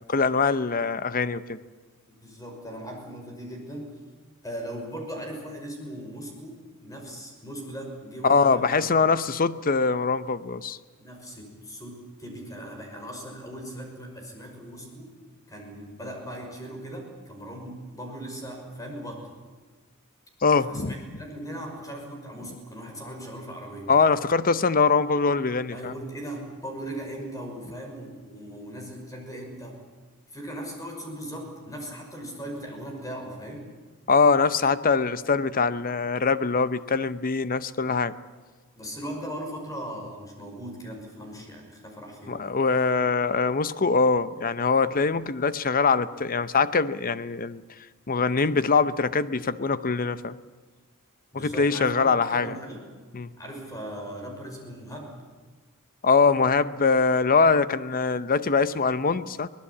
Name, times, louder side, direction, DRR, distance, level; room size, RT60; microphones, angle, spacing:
voice 1, 0.1-1.6 8.2-10.8 20.4-21.0 23.9-25.9 34.1-38.1 42.3-47.6 48.1-50.4 51.3-52.6 53.1-53.3 56.0-59.5, left 4 dB, 40° left, 14 dB, 0.7 m, -23 dB
voice 2, 2.1-4.0 4.4-8.9 9.3-9.4 11.0-15.1 15.5-19.4 20.7-23.9 25.7-29.8 30.3-33.7 38.8-42.4 51.3-52.9 53.4-55.1, right 1 dB, 15° left, 2 dB, 5.9 m, -38 dB
24.0 x 19.0 x 8.6 m, 1.4 s
head